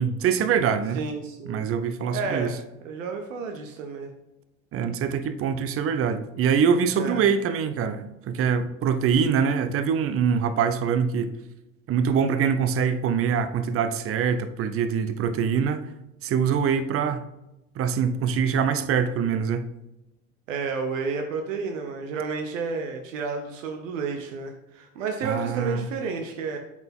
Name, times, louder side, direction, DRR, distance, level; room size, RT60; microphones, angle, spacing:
voice 1, 0.0-1.0 1.5-2.5 4.7-11.3 11.9-15.8 16.2-17.2 17.8-19.7 25.2-25.9, right 7 dB, 35° right, 0.7 m, -24 dB
voice 2, 0.9-1.7 2.1-4.1 7.0-7.3 20.5-26.6, right 5 dB, 75° right, 0.9 m, -31 dB
7.5 x 5.0 x 3.7 m
hypercardioid pair, 80°, 38 cm